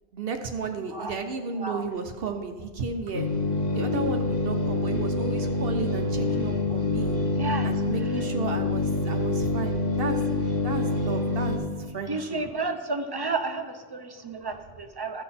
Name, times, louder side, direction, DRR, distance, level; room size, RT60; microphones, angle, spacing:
voice 1, 0.1-3.3 3.7-7.2 7.6-10.4 10.6-11.7 11.9-12.4, right 5 dB, 60° right, 5 dB, 0.9 m, -33 dB
voice 2, 0.9-1.2 1.6-1.9 7.3-8.2 12.1-15.2, right 3 dB, 30° right, 6 dB, 0.5 m, -32 dB
sound 1, 3.1-11.6, left 3 dB, 55° left, 2.1 m, -26 dB
14.5 x 5.9 x 4.2 m, 1.5 s
omnidirectional pair, 1.1 m